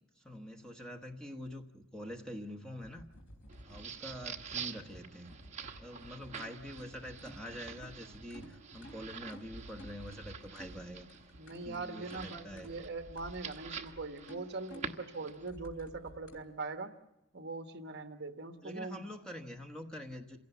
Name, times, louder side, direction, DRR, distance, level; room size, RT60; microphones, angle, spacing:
voice 1, 0.2-3.1 3.7-5.3 5.8-11.1 11.5-12.8 18.6-20.4, equal, 5° left, 2 dB, 1.3 m, -46 dB
sound 1, 2.8-16.4, equal, 65° left, 3.6 m, -53 dB
sound 2, 3.5-15.5, right 7 dB, 30° right, 1.1 m, -47 dB
voice 2, 11.3-16.9 17.3-19.0, right 3 dB, 50° right, 7 dB, 1.2 m, -42 dB
27.0 x 17.0 x 8.1 m, 0.92 s
head